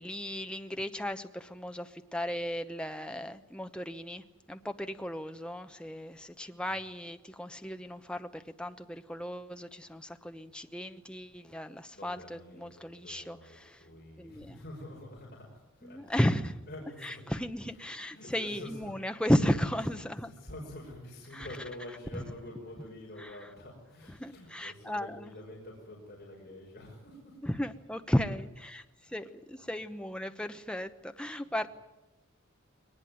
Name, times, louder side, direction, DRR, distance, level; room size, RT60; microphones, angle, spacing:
voice 1, 0.0-13.8 14.2-14.6 15.8-16.5 17.0-20.3 21.3-21.5 22.1-22.2 23.2-23.3 24.2-25.3 27.4-31.7, equal, 5° left, 7 dB, 0.9 m, -34 dB
voice 2, 11.8-16.2 16.7-17.2 17.7-17.8 18.1-18.9 20.3-27.4 29.0-29.1, left 1 dB, 45° left, -2 dB, 5.4 m, -47 dB
22.0 x 20.0 x 9.5 m, 1.0 s
head